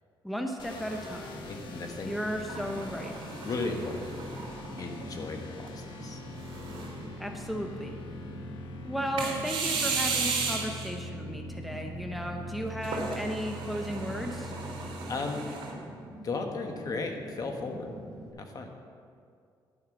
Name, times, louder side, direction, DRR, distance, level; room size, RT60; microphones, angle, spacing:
voice 1, 0.2-1.4 2.1-3.1 7.2-7.9 8.8-14.5, equal, ahead, 3 dB, 0.8 m, -35 dB
sound 1, 0.6-14.9, left 1 dB, 70° left, 1.2 m, -43 dB
Fire, 0.9-18.3, right 1 dB, 45° right, 2.4 m, -46 dB
voice 2, 1.5-2.1 3.4-4.0 4.8-6.2 14.8-15.6 16.2-17.9 18.4-18.7, left 3 dB, 45° left, 4 dB, 1.2 m, -35 dB
sound 2, 2.5-5.0 5.6-5.7 6.4-7.1 9.2-10.9 12.8-15.7, right 4 dB, 85° right, 2.3 m, -34 dB
11.0 x 5.8 x 7.2 m, 2.3 s
cardioid pair, 110°, 9 cm